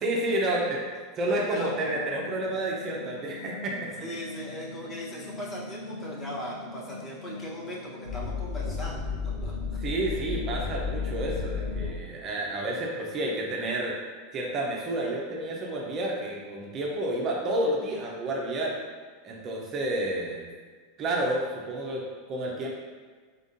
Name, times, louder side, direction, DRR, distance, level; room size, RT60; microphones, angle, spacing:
voice 1, 0.0-0.9 1.2-4.0 9.8-13.9 14.3-18.7 19.2-20.5 21.0-22.7, right 1 dB, 40° right, -2 dB, 0.8 m, -30 dB
sound 1, 1.2-11.9, left 4 dB, 80° left, 1.5 m, -36 dB
voice 2, 1.3-1.7 4.0-9.1 9.4-9.5 10.7-10.8, equal, 30° left, -5 dB, 1.2 m, -39 dB
4.2 x 3.5 x 2.7 m, 1.5 s
hypercardioid pair, 90°, 0 cm